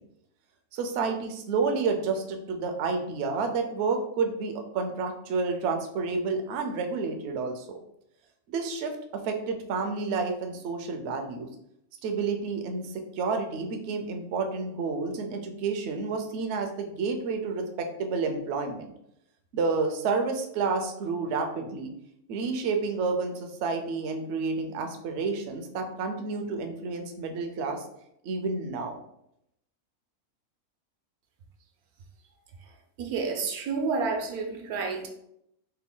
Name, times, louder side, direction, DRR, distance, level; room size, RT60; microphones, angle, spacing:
voice 1, 0.7-7.8 8.5-11.5 12.0-18.9 19.5-21.9 22.3-27.8 28.2-29.0, right 4 dB, 65° right, 0.7 m, -30 dB
voice 2, 33.0-35.1, right 4 dB, 85° right, 1.1 m, -30 dB
3.3 x 2.2 x 3.6 m
omnidirectional pair, 1.5 m